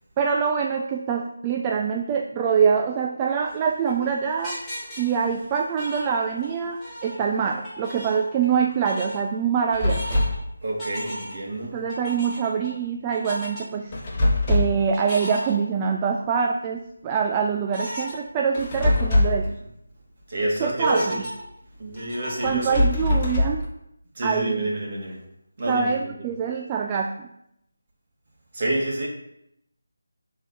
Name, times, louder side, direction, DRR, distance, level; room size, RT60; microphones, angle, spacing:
voice 1, 0.2-4.6 5.0-10.2 11.7-13.9 14.5-19.5 20.6-21.2 22.4-23.7 24.2-24.7 25.7-27.3, right 6 dB, 20° right, 2 dB, 0.3 m, -25 dB
sound 1, 3.4-6.5 6.8-8.6 8.8-9.2 9.7-10.3 10.8-11.5 11.9-12.7 13.1-13.6 14.9-16.1 16.6-16.7 17.7-18.1 18.6-18.7 19.0-19.1 19.6-20.0 20.8-22.6, equal, 5° left, 2.2 m, -36 dB
sound 2, 9.7-10.5 13.9-14.9 18.5-19.5 22.5-23.7, left 1 dB, 30° left, 1.2 m, -22 dB
voice 2, 10.6-11.8 20.3-21.2 21.8-22.8 24.2-25.2 25.6-25.9 28.5-29.1, right 1 dB, 40° right, -3 dB, 2.0 m, -28 dB
5.7 x 3.7 x 5.8 m, 0.79 s
figure-of-eight pair, 160°, 0 cm